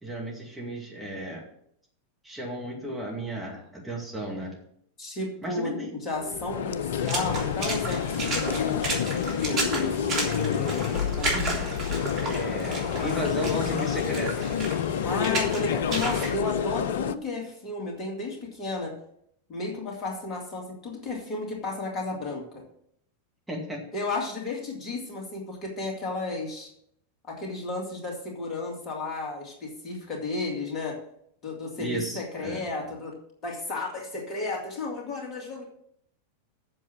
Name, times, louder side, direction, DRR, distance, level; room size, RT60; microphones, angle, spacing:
voice 1, 0.0-1.4 2.2-4.5 5.4-5.9 11.3-11.6 12.2-14.5 23.5-23.8 31.8-32.6, right 1 dB, 10° right, -3 dB, 2.4 m, -34 dB
voice 2, 5.0-11.7 15.0-18.9 19.5-22.6 23.9-26.7 27.2-31.0 31.4-33.2 33.4-35.6, left 3 dB, 30° left, 0 dB, 2.7 m, -33 dB
sound 1, 6.1-17.1, left 9 dB, 60° left, 0.5 m, -29 dB
Water / Splash splatter, 6.9-16.3, right 2 dB, 35° right, 3.4 m, -33 dB
7.8 x 7.3 x 7.6 m, 0.70 s
figure-of-eight pair, 90°, 0 cm